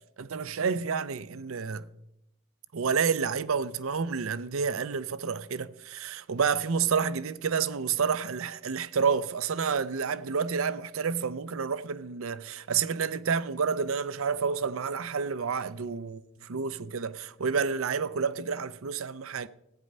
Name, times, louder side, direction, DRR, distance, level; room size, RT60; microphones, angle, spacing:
voice 1, 0.2-1.9 2.7-19.5, right 6 dB, 75° right, 0.5 m, -29 dB
14.5 x 9.1 x 5.4 m
head